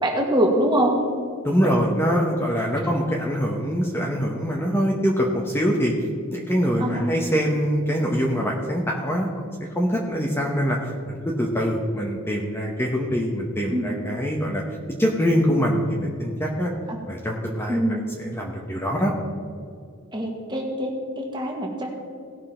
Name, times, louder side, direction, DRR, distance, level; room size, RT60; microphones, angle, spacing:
voice 1, 0.0-1.0 1.6-1.7 6.8-7.1 13.7-13.9 16.9-17.0 17.7-18.1 20.1-22.1, right 1 dB, 20° right, 0 dB, 1.7 m, -24 dB
voice 2, 1.4-9.3 9.7-14.6 15.0-16.7 17.1-17.8 18.2-19.1, equal, 10° left, -1 dB, 1.0 m, -24 dB
18.0 x 6.1 x 4.4 m, 2.3 s
head